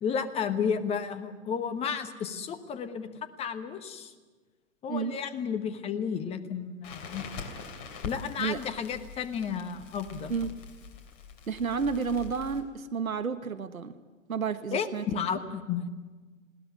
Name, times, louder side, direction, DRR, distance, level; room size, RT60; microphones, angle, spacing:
voice 1, 0.0-3.1 3.4-4.1 4.8-7.2 8.0-10.3 14.7-15.9, left 7 dB, 15° left, 10 dB, 1.1 m, -32 dB
Crackle, 6.8-12.6, left 5 dB, 35° left, 3.1 m, -43 dB
voice 2, 11.5-14.0 14.3-15.0, right 5 dB, 85° right, 10 dB, 1.3 m, -31 dB
20.5 x 17.5 x 9.9 m, 1.4 s
figure-of-eight pair, 125°, 40 cm